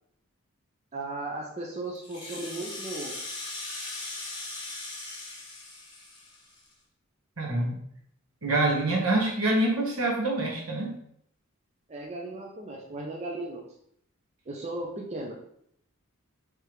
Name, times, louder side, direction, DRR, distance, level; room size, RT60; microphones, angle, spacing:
voice 1, 0.9-3.1 11.9-13.6 14.5-15.4, right 2 dB, 30° right, -1 dB, 0.5 m, -36 dB
Rattle (instrument), 1.9-6.7, left 2 dB, 20° left, 0.9 m, -39 dB
voice 2, 7.4-7.7 8.4-10.9, right 2 dB, 75° right, -1 dB, 1.2 m, -26 dB
4.9 x 3.4 x 3.0 m, 0.70 s
head